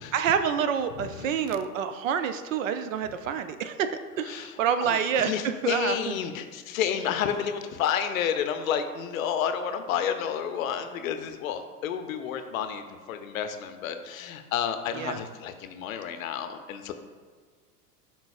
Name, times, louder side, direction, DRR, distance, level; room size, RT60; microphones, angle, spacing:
voice 1, 0.1-3.9 4.2-5.4 5.6-6.1 14.9-15.2, right 7 dB, 55° right, 11 dB, 0.6 m, -27 dB
voice 2, 1.0-1.5 4.2-16.9, left 8 dB, 55° left, 8 dB, 0.7 m, -30 dB
11.5 x 3.9 x 2.4 m, 1.5 s
figure-of-eight pair, 90°, 48 cm